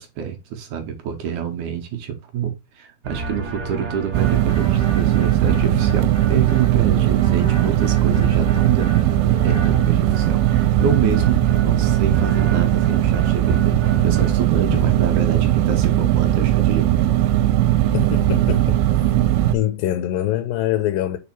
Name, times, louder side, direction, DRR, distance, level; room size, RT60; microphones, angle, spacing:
voice 1, 0.0-13.8 14.0-17.2, right 8 dB, 70° right, 2.0 m, -27 dB
sound 1, 3.0-14.4, right 1 dB, 35° right, 1.7 m, -31 dB
sound 2, 4.1-19.6, right 13 dB, 85° right, 2.6 m, -18 dB
voice 2, 17.9-18.8 19.4-21.2, left 13 dB, 80° left, 2.2 m, -24 dB
5.1 x 4.8 x 4.3 m
omnidirectional pair, 4.3 m